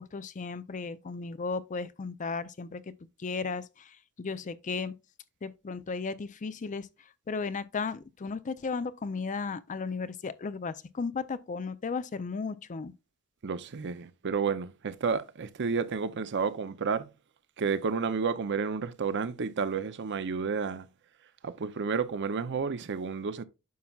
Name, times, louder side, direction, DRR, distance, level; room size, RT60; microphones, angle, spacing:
voice 1, 0.0-2.8 3.2-4.9 5.4-6.9 7.3-12.9, left 4 dB, 35° left, 0.4 m, -35 dB
voice 2, 13.4-17.1 17.6-20.9 21.4-23.4, right 5 dB, 55° right, 0.6 m, -31 dB
9.3 x 5.8 x 2.3 m
head